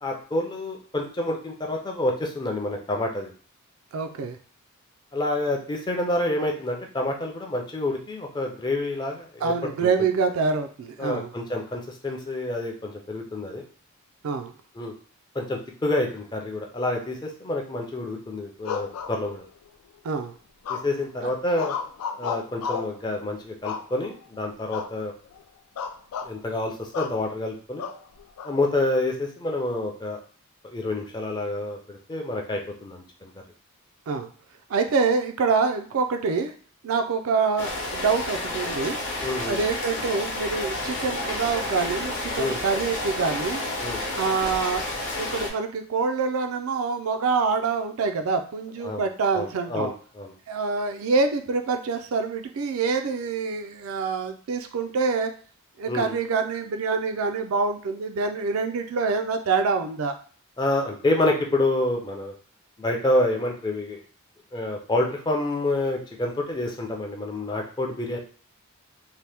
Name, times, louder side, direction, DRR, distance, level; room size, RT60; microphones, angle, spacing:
voice 1, 0.0-3.3 5.1-9.5 9.8-9.9 11.0-13.6 14.8-14.9 15.3-19.4 20.7-21.8 22.2-25.1 26.2-27.9 28.4-30.2 30.6-33.3 39.2-39.6 42.4-42.6 43.8-44.0 48.8-49.1 49.3-50.3 55.9-56.2 60.6-62.3 62.8-64.0 64.5-68.2, left 2 dB, 20° left, 2 dB, 0.4 m, -28 dB
voice 2, 3.9-4.4 9.4-11.3 14.2-14.5 20.0-20.3 21.2-21.3 34.1-34.3 34.7-36.5 36.8-39.0 39.4-43.6 44.1-49.9 50.5-55.3 55.8-60.1, right 4 dB, 65° right, 7 dB, 0.4 m, -26 dB
sound 1, 18.6-19.7 20.6-21.1 21.5-23.0 23.6-24.2 24.7-25.0 25.3-25.4 25.8-26.3 26.9-27.2 27.8-28.5, left 6 dB, 85° left, 0.3 m, -33 dB
Rain, 37.6-45.5, left 2 dB, 55° left, 0.8 m, -30 dB
2.8 x 2.1 x 3.3 m, 0.43 s
head